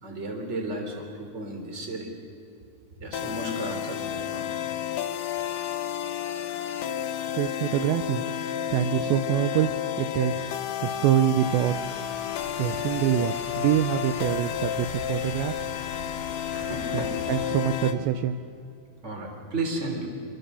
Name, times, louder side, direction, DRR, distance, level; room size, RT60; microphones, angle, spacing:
voice 1, 0.0-2.1 3.0-4.5 16.5-17.2 17.9-18.1 19.0-20.1, right 2 dB, 15° right, 2 dB, 3.1 m, -34 dB
sound 1, 3.1-18.0, left 10 dB, 85° left, 1.8 m, -31 dB
voice 2, 7.3-8.2 8.7-9.7 10.0-10.5 10.8-11.8 12.6-15.7 16.9-17.0 17.3-18.4, right 11 dB, 80° right, 9 dB, 2.8 m, -25 dB
sound 2, 11.4-17.5, left 3 dB, 50° left, 5.8 m, -42 dB
26.5 x 24.0 x 6.9 m, 2.6 s
omnidirectional pair, 5.3 m